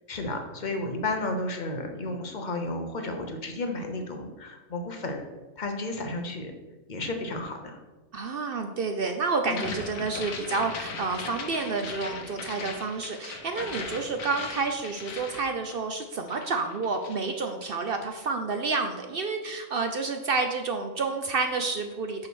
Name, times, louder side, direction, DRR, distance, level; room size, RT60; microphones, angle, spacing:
voice 1, 0.1-5.2 5.6-6.5 6.9-7.8 9.4-9.7, left 2 dB, 40° left, 4 dB, 0.9 m, -32 dB
voice 2, 8.1-22.3, right 4 dB, 60° right, 5 dB, 0.6 m, -29 dB
sound 1, 9.5-16.0 16.3-17.3, left 4 dB, 70° left, 1.3 m, -39 dB
6.1 x 4.6 x 6.2 m, 1.2 s
omnidirectional pair, 1.5 m